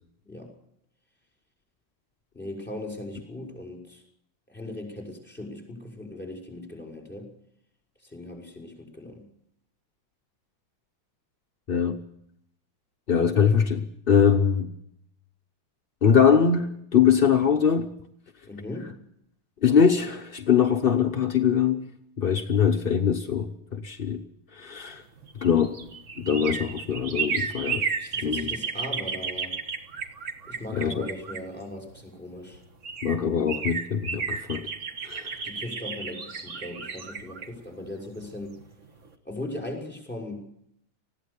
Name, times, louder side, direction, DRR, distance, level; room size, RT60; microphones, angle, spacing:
voice 1, 2.3-4.0 4.5-7.3 8.0-9.3 18.5-19.0 28.0-29.6 30.5-32.6 35.4-38.6 39.2-40.5, left 1 dB, 5° left, 0 dB, 5.7 m, -38 dB
voice 2, 11.7-12.0 13.1-14.7 16.0-17.9 19.6-21.9 22.2-24.2 24.5-25.0 25.4-25.7 26.2-27.8 28.2-28.5 30.7-31.1 33.0-34.7 35.0-35.3, left 7 dB, 45° left, 6 dB, 0.7 m, -22 dB
sound 1, 25.2-32.0 32.5-32.6 32.8-38.6 39.0-39.1, right 6 dB, 40° right, 1.6 m, -33 dB
20.0 x 16.0 x 8.2 m, 0.74 s
omnidirectional pair, 2.2 m